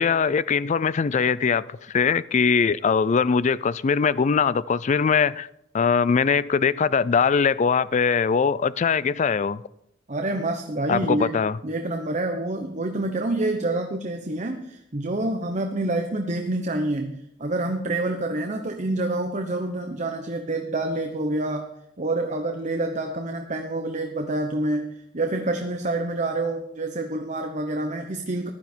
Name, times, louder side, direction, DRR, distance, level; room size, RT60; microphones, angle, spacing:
voice 1, 0.0-5.5 5.7-9.6 10.9-11.6, left 6 dB, 40° left, 0.4 m, -21 dB
voice 2, 10.1-11.4 11.6-21.7 22.0-28.5, right 2 dB, 40° right, 1.0 m, -27 dB
15.5 x 11.5 x 4.5 m
head